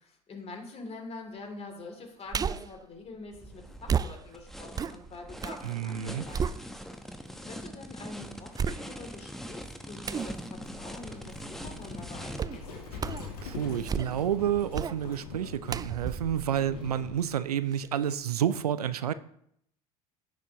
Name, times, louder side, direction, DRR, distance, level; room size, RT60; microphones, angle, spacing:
voice 1, 0.0-6.4 7.4-12.8, left 3 dB, 35° left, 2.9 m, -45 dB
sound 1, 2.3-2.8 3.9-5.6 6.0-7.1 7.6-7.7 8.5-9.2 10.0-10.4 12.4-12.6 13.0-13.3 13.7-14.3 14.7-15.0 15.7-17.4 17.7-17.8, right 7 dB, 20° right, 0.4 m, -33 dB
sound 2, 3.3-12.4, equal, ahead, 1.1 m, -43 dB
voice 2, 5.6-6.2 12.9-13.0 13.4-19.1, right 10 dB, 85° right, 0.5 m, -30 dB
Livestock farm animals working animals, 10.5-17.2, left 4 dB, 80° left, 2.2 m, -43 dB
15.5 x 6.7 x 3.0 m
hypercardioid pair, 70°, 19 cm